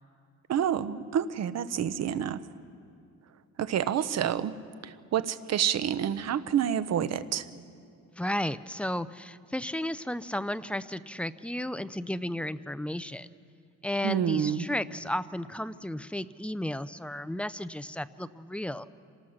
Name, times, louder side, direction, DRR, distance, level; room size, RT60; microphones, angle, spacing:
voice 1, 0.5-2.4 3.6-4.5 4.8-7.5 14.0-14.6, right 9 dB, 55° right, 13 dB, 0.9 m, -28 dB
voice 2, 8.2-13.3 13.8-18.9, left 1 dB, 5° left, 14 dB, 0.4 m, -33 dB
26.5 x 19.0 x 6.5 m, 2.5 s
cardioid pair, 125°, 32 cm